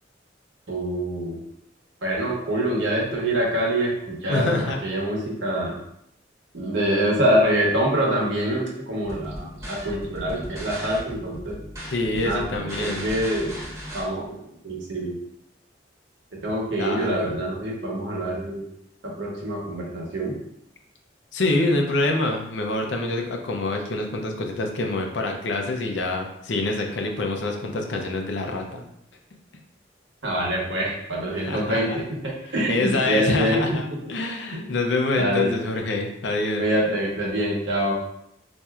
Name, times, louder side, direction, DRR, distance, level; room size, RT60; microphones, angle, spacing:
voice 1, 0.7-1.4 2.0-5.8 6.5-11.6 12.2-12.4 12.8-13.5 13.9-15.1 16.4-18.6 19.0-20.4 30.2-33.6 34.5-34.7 35.2-35.5 36.6-38.0, right 1 dB, 75° right, -3 dB, 1.0 m, -25 dB
voice 2, 4.3-4.8 11.9-13.1 16.8-17.4 21.3-28.9 31.3-32.0 32.7-33.8 34.1-36.7, left 2 dB, 75° left, 2 dB, 0.5 m, -26 dB
sound 1, 9.0-14.0, equal, 15° right, 0.9 m, -36 dB
4.2 x 2.6 x 2.4 m, 0.77 s
head